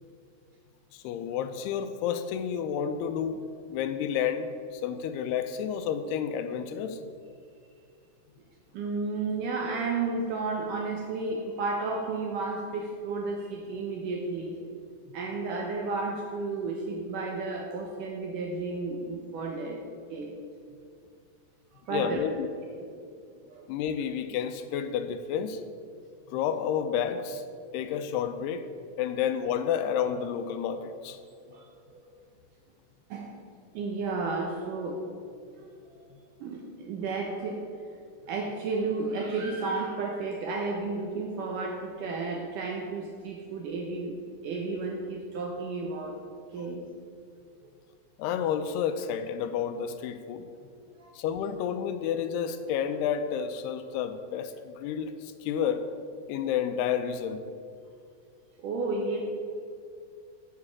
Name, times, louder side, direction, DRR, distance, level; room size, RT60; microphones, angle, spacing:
voice 1, 0.9-3.4 3.7-7.0 21.9-22.5 23.7-25.6 26.3-27.4 27.7-28.7 29.0-31.2 48.2-50.4 51.1-55.8 56.3-57.4, left 8 dB, 80° left, 9 dB, 2.6 m, -30 dB
voice 2, 8.7-14.6 15.1-20.4 21.7-22.2 22.9-23.1 23.5-23.7 27.7-27.8 31.5-32.1 33.1-33.3 33.7-35.0 35.6-35.7 36.4-37.6 38.3-46.2 46.5-46.8 50.8-51.1 58.6-59.2, right 3 dB, 70° right, 0 dB, 2.0 m, -32 dB
9.5 x 7.6 x 7.2 m, 2.3 s
omnidirectional pair, 4.8 m